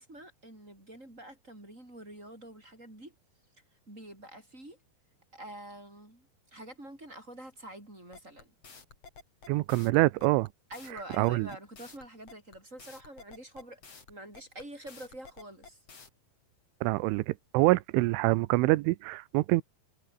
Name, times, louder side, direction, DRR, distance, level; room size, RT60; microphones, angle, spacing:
voice 1, 0.0-3.1 3.9-4.8 5.3-8.5 10.7-13.8 14.1-15.8, right 1 dB, 15° right, 7.5 m, -47 dB
sound 1, 8.1-16.1, left 4 dB, 35° left, 4.9 m, -51 dB
voice 2, 9.5-10.5 11.2-11.5 16.8-19.6, right 21 dB, 90° right, 3.2 m, -25 dB
omnidirectional pair, 5.4 m